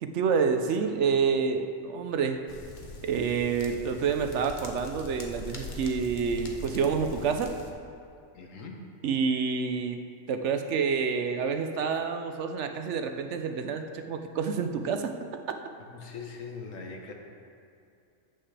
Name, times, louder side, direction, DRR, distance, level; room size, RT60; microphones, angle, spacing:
voice 1, 0.0-2.4 3.0-7.5 9.0-10.0 10.3-15.1, right 5 dB, 65° right, 6 dB, 0.9 m, -28 dB
sound 1, 2.5-7.7, left 2 dB, 40° left, 0.9 m, -42 dB
voice 2, 8.3-8.8 15.9-17.1, left 5 dB, 75° left, 2 dB, 1.4 m, -41 dB
14.0 x 7.4 x 3.3 m, 2.5 s
omnidirectional pair, 1.4 m